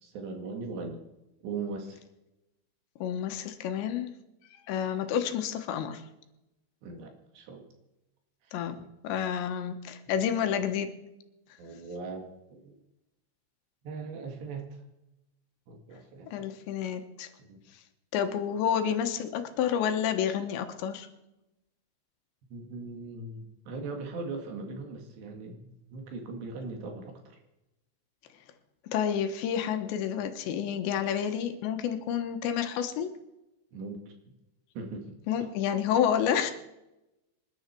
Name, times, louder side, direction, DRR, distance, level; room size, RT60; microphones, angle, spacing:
voice 1, 0.0-1.0 1.4-2.0 6.8-7.7 8.4-8.9 10.4-10.5 11.6-12.8 13.8-14.8 15.7-16.5 17.5-17.6 22.5-27.4 33.7-34.1 34.8-35.5 36.2-36.4, right 3 dB, 70° right, 4 dB, 4.1 m, -40 dB
voice 2, 3.0-4.1 4.7-6.0 8.5-8.8 9.0-10.9 16.3-17.3 18.1-21.1 28.9-33.1 35.3-36.5, left 8 dB, 75° left, 7 dB, 3.3 m, -29 dB
26.5 x 10.5 x 4.5 m, 0.93 s
omnidirectional pair, 5.3 m